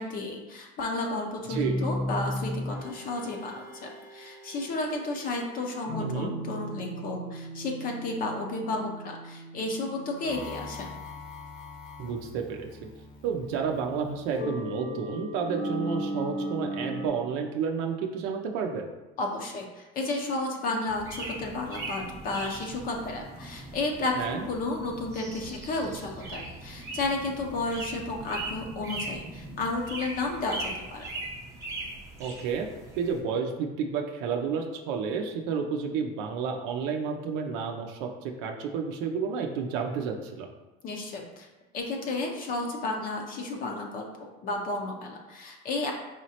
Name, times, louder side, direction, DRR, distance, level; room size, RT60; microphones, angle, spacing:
voice 1, 0.0-10.9 19.2-31.1 40.8-41.5 41.7-45.9, left 2 dB, 40° left, 1 dB, 0.6 m, -32 dB
sound 1, 1.5-17.1, equal, 70° left, 1.1 m, -37 dB
voice 2, 1.5-1.8 6.0-6.3 12.0-12.9 13.2-18.8 24.2-24.4 32.2-32.7 33.0-40.5, right 6 dB, 85° right, 3 dB, 0.5 m, -31 dB
sound 2, 20.9-33.2, right 2 dB, 15° right, 0.8 m, -40 dB
4.9 x 3.1 x 2.8 m, 1.1 s
cardioid pair, 155°, 21 cm